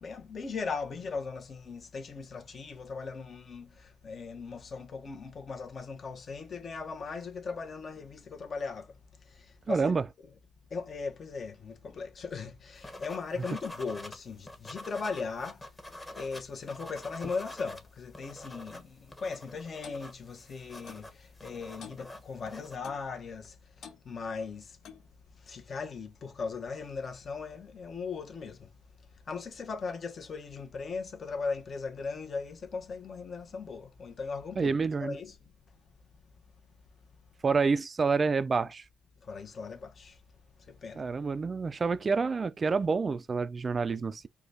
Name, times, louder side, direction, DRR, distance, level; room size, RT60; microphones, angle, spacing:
voice 1, 0.0-8.9 9.7-9.9 10.7-15.6 16.2-23.5 24.0-24.7 25.5-28.7 29.3-34.7 35.0-35.4 39.2-40.2 40.7-41.0, left 4 dB, 45° left, 1.0 m, -38 dB
voice 2, 9.7-10.1 34.6-35.2 37.4-38.8 41.0-44.3, right 4 dB, 35° right, 0.4 m, -28 dB
sound 1, 12.8-14.2 14.5-17.8 18.1-22.8, left 1 dB, 15° left, 1.1 m, -46 dB
Clock, 19.8-20.0 20.9-21.1 21.8-22.0 22.8-23.1 23.8-24.0 24.8-25.1, left 7 dB, 65° left, 0.8 m, -48 dB
4.8 x 2.3 x 4.0 m
cardioid pair, 90°, 0 cm